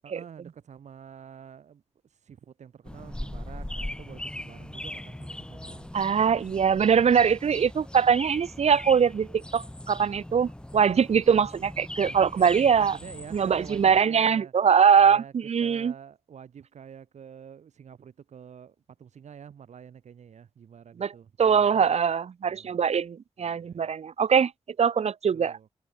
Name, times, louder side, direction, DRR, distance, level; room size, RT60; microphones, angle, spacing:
voice 1, 0.0-1.8 2.1-6.4 12.1-14.5 15.0-15.3 15.6-21.8 22.5-22.8 23.4-23.9 25.3-25.7, right 8 dB, 90° right, 3.2 m, -47 dB
sound 1, 2.8-14.0, left 1 dB, 10° left, 2.7 m, -40 dB
voice 2, 5.9-9.3 9.5-13.0 13.3-15.9 21.0-21.1 21.4-24.5 24.8-25.6, right 7 dB, 70° right, 1.7 m, -22 dB
wide cardioid pair, 115°, 12 cm